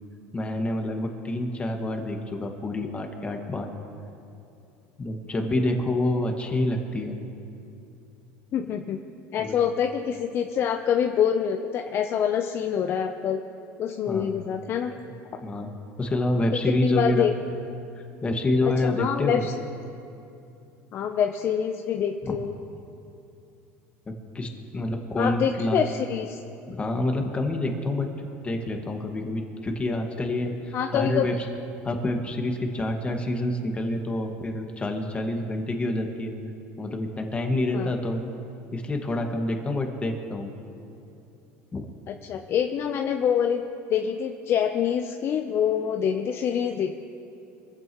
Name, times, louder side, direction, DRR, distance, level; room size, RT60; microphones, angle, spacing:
voice 1, 0.3-3.7 5.0-7.2 9.4-9.5 14.1-14.3 15.0-15.1 15.4-15.7 16.0-17.3 18.0-19.4 22.2-22.3 24.1-25.8 26.7-31.4 31.8-36.3 36.8-38.2 38.7-40.5 41.7-41.9, left 1 dB, 20° left, 3 dB, 1.8 m, -27 dB
voice 2, 8.5-9.0 9.3-13.4 13.8-14.9 16.8-17.3 18.8-19.5 20.9-22.5 25.2-26.4 30.7-31.2 37.7-37.9 42.1-43.6 43.9-46.9, left 8 dB, 45° left, 5 dB, 0.7 m, -26 dB
24.0 x 15.0 x 3.1 m, 2.7 s
supercardioid pair, 120°, 6 cm